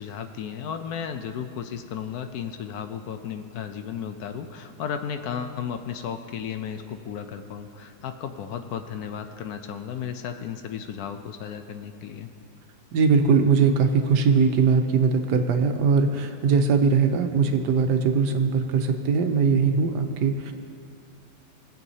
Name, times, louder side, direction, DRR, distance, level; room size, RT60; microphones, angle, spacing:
voice 1, 0.0-12.3, left 8 dB, 70° left, 8 dB, 1.1 m, -34 dB
voice 2, 12.9-20.5, right 5 dB, 90° right, 6 dB, 1.4 m, -21 dB
20.5 x 7.4 x 2.8 m, 2.4 s
omnidirectional pair, 1.8 m